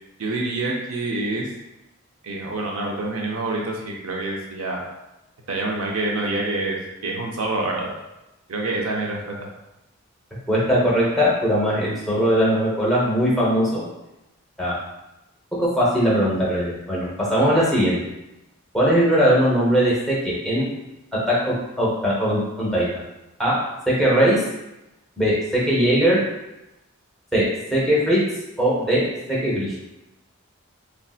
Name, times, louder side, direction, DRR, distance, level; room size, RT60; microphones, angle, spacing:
voice 1, 0.2-1.5 2.2-4.8 5.5-6.8 7.0-7.9 8.5-9.3, right 2 dB, 80° right, -1 dB, 0.5 m, -26 dB
voice 2, 10.5-13.8 14.6-14.8 15.6-18.0 18.7-20.7 21.3-22.9 23.4-23.6 23.9-24.4 25.2-26.2 27.3-27.5 27.7-28.2 28.6-29.0 29.3-29.7, equal, ahead, -7 dB, 0.7 m, -20 dB
3.3 x 2.6 x 2.3 m, 0.94 s
head